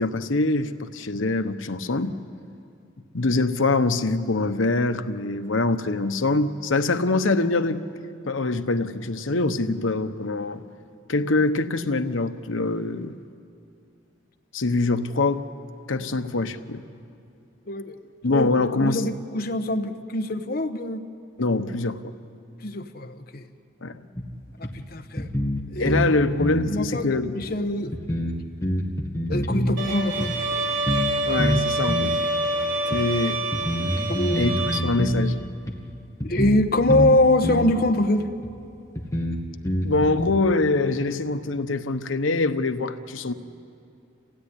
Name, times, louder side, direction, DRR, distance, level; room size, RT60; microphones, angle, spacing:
voice 1, 0.0-2.2 3.1-7.8 8.2-10.6 11.1-13.1 14.5-15.4 15.9-16.8 18.2-19.0 21.4-22.1 23.8-24.0 25.8-27.3 31.3-32.1 32.9-33.4 34.4-35.4 39.8-43.3, left 3 dB, 85° left, 1.1 m, -24 dB
voice 2, 17.7-18.0 18.3-18.5 18.8-21.0 22.6-23.4 24.6-25.3 25.7-26.0 26.7-27.1 27.3-27.9 29.3-30.4 34.1-34.4 36.2-38.3, left 1 dB, 50° left, 1.0 m, -23 dB
sound 1, 24.2-24.3 24.6-24.7 25.2-26.1 26.4-26.7 27.4-27.5 27.9-29.7 30.2-30.3 30.9-31.1 31.4-32.2 32.9-33.0 33.5-35.3 35.7-35.8 36.2-37.1 37.4-37.7 38.4-38.5 39.0-40.3, equal, 15° left, 1.8 m, -26 dB
Bowed string instrument, 29.8-34.8, right 1 dB, 75° right, 3.7 m, -26 dB
27.5 x 16.5 x 9.9 m
head